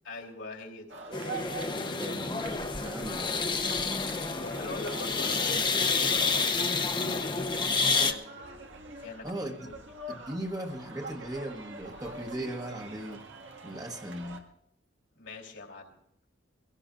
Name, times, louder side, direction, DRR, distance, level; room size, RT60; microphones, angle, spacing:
voice 1, 0.0-1.0 4.4-9.7 15.1-15.9, left 2 dB, 80° left, 3.2 m, -43 dB
sound 1, 0.9-14.4, right 2 dB, 90° right, 1.9 m, -45 dB
sound 2, 1.1-8.1, left 4 dB, 25° left, 0.8 m, -29 dB
voice 2, 1.7-3.4 9.2-9.7 10.1-13.3 13.6-14.4, right 1 dB, 20° right, 1.2 m, -38 dB
23.0 x 16.5 x 2.5 m
head